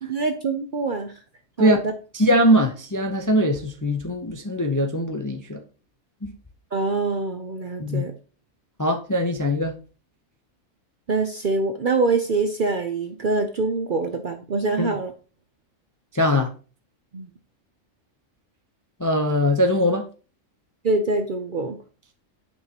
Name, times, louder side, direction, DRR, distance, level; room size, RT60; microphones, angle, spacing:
voice 1, 0.0-1.1 1.6-1.9 6.7-8.1 11.1-15.1 17.1-17.3 20.8-21.8, right 3 dB, 50° right, 0.6 m, -24 dB
voice 2, 2.1-5.6 6.2-6.3 7.8-8.1 8.8-9.7 14.8-15.0 16.1-16.5 19.0-20.0, equal, 20° left, 0.5 m, -21 dB
9.5 x 5.5 x 2.9 m
omnidirectional pair, 1.5 m